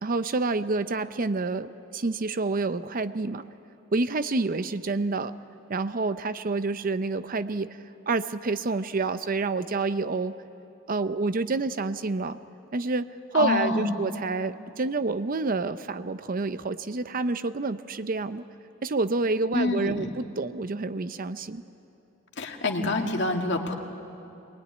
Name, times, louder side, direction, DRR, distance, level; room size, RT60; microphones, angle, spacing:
voice 1, 0.0-3.4 3.9-5.3 5.7-7.8 8.1-10.3 10.9-12.4 12.7-18.4 18.8-21.6, right 3 dB, 45° right, 12 dB, 0.6 m, -28 dB
voice 2, 13.3-13.9 19.5-20.1 22.4-23.8, left 2 dB, 60° left, 3 dB, 2.0 m, -26 dB
24.5 x 20.0 x 9.6 m, 2.8 s
head